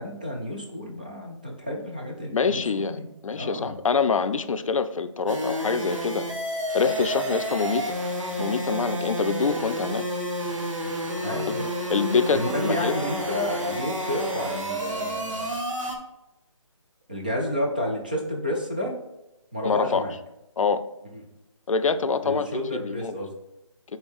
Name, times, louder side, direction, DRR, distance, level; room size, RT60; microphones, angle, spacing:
voice 1, 0.0-3.7 11.2-11.7 12.3-15.6 17.1-18.9 19.5-20.1 21.1-21.2 22.2-23.4, equal, 15° right, 0 dB, 0.4 m, -31 dB
voice 2, 2.3-6.3 6.7-7.9 8.4-10.1 11.4-11.5 11.9-12.9 19.6-20.0 20.6-20.8 21.7-22.5 22.8-23.2, left 5 dB, 90° left, 12 dB, 0.5 m, -25 dB
sound 1, 5.3-16.0, equal, 80° right, 1.4 m, -30 dB
6.9 x 3.9 x 3.6 m, 0.93 s
hypercardioid pair, 175°, 16 cm